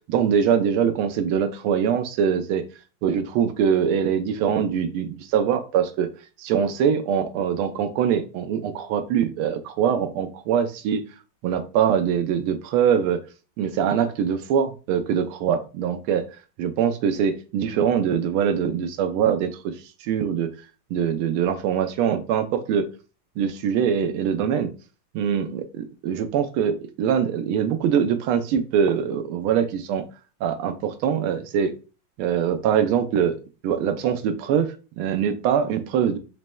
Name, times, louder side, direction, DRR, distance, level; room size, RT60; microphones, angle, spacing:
voice 1, 0.1-2.7 3.0-6.1 6.4-11.0 11.4-13.2 13.6-16.2 16.6-19.7 20.0-20.5 20.9-22.9 23.4-24.7 25.1-30.0 30.4-31.7 32.2-33.4 33.6-36.2, right 8 dB, 80° right, 8 dB, 1.5 m, -23 dB
5.1 x 3.1 x 2.2 m, 0.33 s
omnidirectional pair, 2.4 m